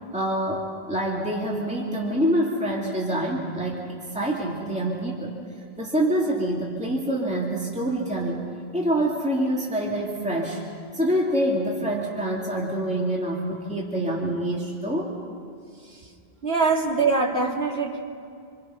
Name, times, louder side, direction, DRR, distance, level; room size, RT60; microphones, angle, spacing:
voice 1, 0.1-5.3 5.8-8.5 8.7-10.6 10.9-15.1, right 1 dB, 5° right, -3 dB, 2.4 m, -26 dB
voice 2, 16.4-18.0, right 4 dB, 80° right, -1 dB, 2.7 m, -23 dB
27.0 x 25.0 x 5.7 m, 2.4 s
omnidirectional pair, 1.0 m